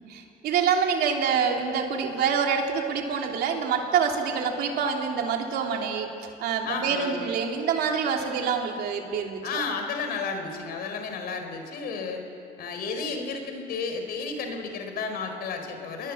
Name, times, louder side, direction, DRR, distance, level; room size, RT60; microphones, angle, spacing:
voice 1, 0.1-6.1 6.4-9.6, right 6 dB, 70° right, 2 dB, 3.2 m, -26 dB
voice 2, 6.6-7.2 9.4-12.2 12.6-16.1, left 4 dB, 65° left, 6 dB, 4.3 m, -32 dB
28.0 x 20.5 x 7.4 m, 2.8 s
cardioid pair, 110°, 17 cm